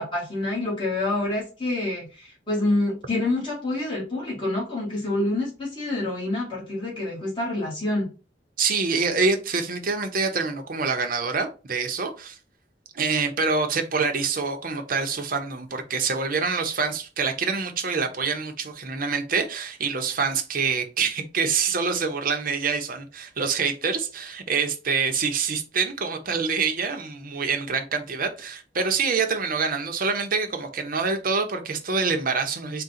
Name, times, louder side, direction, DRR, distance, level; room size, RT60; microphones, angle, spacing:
voice 1, 0.0-8.1, left 2 dB, 25° left, 1.3 m, -27 dB
voice 2, 8.6-12.4 12.9-32.8, right 5 dB, 50° right, 0.7 m, -26 dB
3.7 x 2.2 x 4.1 m
head